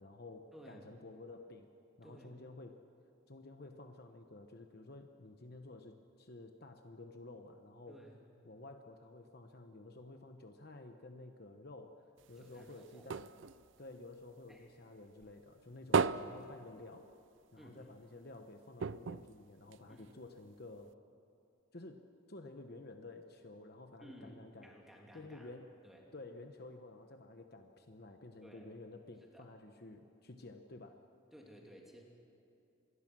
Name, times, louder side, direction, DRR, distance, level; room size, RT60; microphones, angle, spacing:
voice 1, 0.0-1.7 2.0-2.8 3.3-8.0 8.4-13.3 13.8-17.1 17.5-21.0 21.7-24.7 25.1-25.7 26.1-31.0, left 2 dB, 45° left, 6 dB, 1.0 m, -52 dB
voice 2, 0.5-0.8 2.0-2.4 7.9-8.2 12.4-13.1 14.5-14.7 17.6-17.8 19.9-20.1 24.0-25.5 25.8-26.1 28.4-28.6 29.3-29.5 31.3-32.0, equal, ahead, -1 dB, 2.9 m, -56 dB
sound 1, 12.2-14.8 15.2-17.5 17.8-17.9 18.2-18.3 18.8-20.3 20.9-21.0, right 5 dB, 60° right, 0.5 m, -37 dB
26.5 x 21.0 x 6.2 m, 2.8 s
head